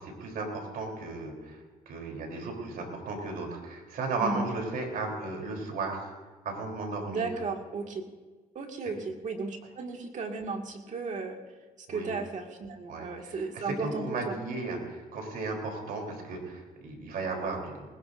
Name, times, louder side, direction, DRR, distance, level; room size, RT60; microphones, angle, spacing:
voice 1, 0.0-1.6 1.9-6.1 6.4-7.3 11.9-12.1 12.9-17.9, right 3 dB, 70° right, 2 dB, 3.5 m, -35 dB
voice 2, 4.2-4.5 7.1-8.0 8.6-11.4 11.9-14.3, right 4 dB, 50° right, 3 dB, 2.0 m, -35 dB
20.5 x 19.0 x 2.6 m, 1.3 s
cardioid pair, 105°, 16 cm